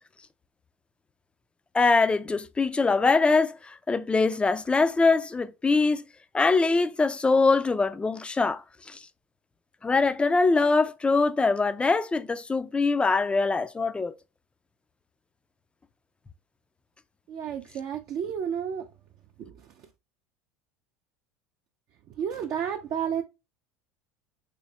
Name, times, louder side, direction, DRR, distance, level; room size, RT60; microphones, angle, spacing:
voice 1, 1.7-6.0 6.3-8.6 8.9-9.0 9.8-14.1, left 3 dB, 15° left, 0.3 m, -23 dB
voice 2, 17.3-18.9 22.2-23.2, right 8 dB, 50° right, 0.5 m, -31 dB
3.3 x 3.1 x 2.7 m
hypercardioid pair, 80°, 8 cm